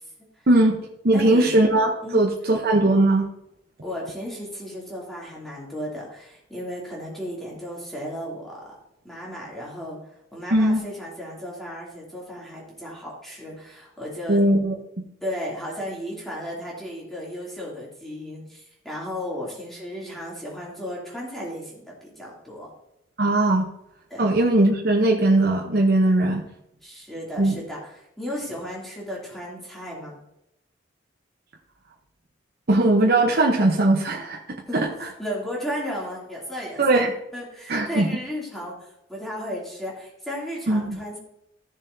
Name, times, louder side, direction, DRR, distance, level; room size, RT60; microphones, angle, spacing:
voice 1, 0.5-0.8 1.0-3.3 10.5-10.8 14.3-15.1 23.2-23.7 24.2-26.4 27.4-27.6 32.7-34.4 34.7-34.9 36.8-37.1 37.7-38.1 40.7-41.0, right 2 dB, 50° right, 0 dB, 0.9 m, -19 dB
voice 2, 1.1-1.5 2.0-2.2 3.8-8.7 9.0-10.0 10.3-14.4 15.2-22.7 24.1-24.3 26.8-30.2 34.7-34.8 35.2-37.0 37.3-41.2, equal, ahead, -5 dB, 2.8 m, -34 dB
15.0 x 6.9 x 2.7 m, 0.80 s
head